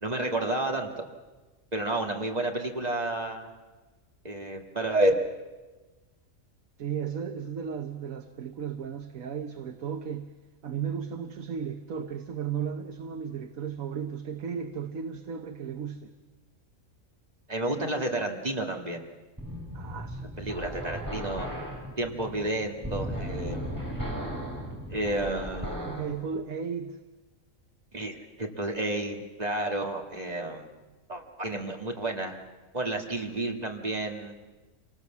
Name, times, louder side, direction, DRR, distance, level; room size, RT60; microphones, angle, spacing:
voice 1, 0.0-1.1 1.7-3.5 4.2-5.1 17.5-19.1 20.4-21.5 22.0-23.7 24.9-26.1 27.9-30.7 31.1-32.4 32.7-34.3, right 1 dB, 30° right, 2 dB, 1.9 m, -30 dB
voice 2, 6.8-10.3 10.6-16.1 19.7-20.5 25.8-27.0, right 7 dB, 85° right, 6 dB, 1.4 m, -35 dB
sound 1, 19.4-26.1, equal, 15° right, 4.5 m, -36 dB
27.0 x 19.5 x 7.3 m, 1.2 s
omnidirectional pair, 1.4 m